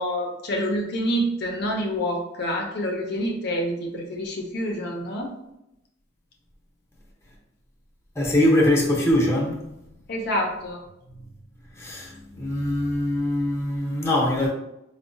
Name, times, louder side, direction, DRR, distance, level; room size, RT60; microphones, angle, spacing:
voice 1, 0.0-5.3 10.1-10.8, equal, 60° left, 0.5 m, -27 dB
voice 2, 8.1-9.7 11.7-14.5, left 1 dB, 15° left, 0.7 m, -22 dB
4.6 x 2.1 x 2.5 m
head